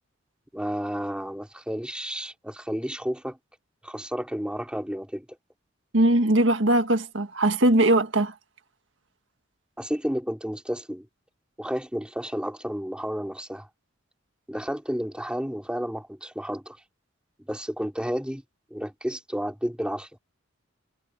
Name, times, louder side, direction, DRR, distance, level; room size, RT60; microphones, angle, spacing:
voice 1, 0.5-3.4 3.8-5.2 9.8-11.1 11.6-13.7 14.5-16.8 17.5-18.4 18.7-20.1, equal, 5° right, 3.4 m, -31 dB
voice 2, 5.9-8.3, right 1 dB, 65° right, 1.8 m, -20 dB
head